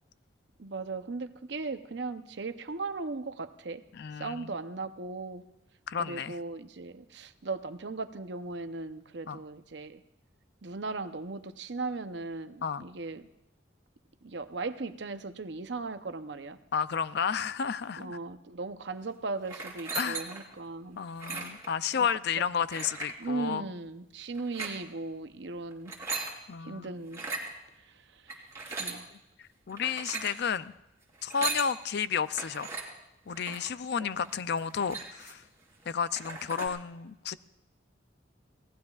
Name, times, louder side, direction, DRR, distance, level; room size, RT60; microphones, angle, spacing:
voice 1, 0.6-3.8 4.1-5.4 6.0-10.0 10.6-13.2 14.2-16.6 18.0-21.0 21.3-21.5 23.2-25.9 26.6-27.2 27.8-29.1 33.5-33.7 34.0-34.3, right 3 dB, 65° right, 10 dB, 0.7 m, -38 dB
voice 2, 3.9-4.5 5.9-6.4 9.3-9.4 12.6-12.9 16.7-18.2 20.0-20.3 21.0-23.6 26.5-26.9 29.1-29.2 29.7-30.7 31.2-32.7 33.3-35.4 35.9-37.4, left 7 dB, 60° left, 15 dB, 0.4 m, -32 dB
sound 1, 19.4-20.5 21.1-21.7 22.7-23.1 24.3-24.7 25.7-26.3 27.1-27.5 28.3-29.0 29.7-30.4 31.2-31.7 32.3-32.8 33.3-33.7 34.2-34.3 34.6-35.4 35.8-35.9 36.1-36.7, right 4 dB, 15° right, 3.2 m, -37 dB
27.5 x 18.0 x 2.4 m, 0.90 s
head